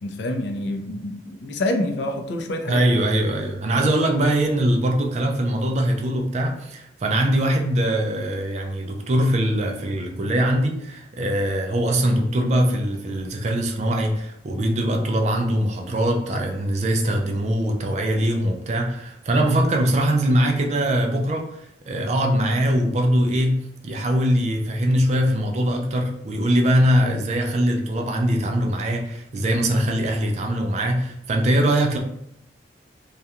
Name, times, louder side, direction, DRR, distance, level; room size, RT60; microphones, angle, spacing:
voice 1, 0.0-2.8, left 1 dB, 70° left, 4 dB, 0.4 m, -27 dB
voice 2, 2.7-32.0, right 1 dB, 40° right, 2 dB, 0.4 m, -22 dB
2.4 x 2.2 x 2.8 m, 0.74 s
head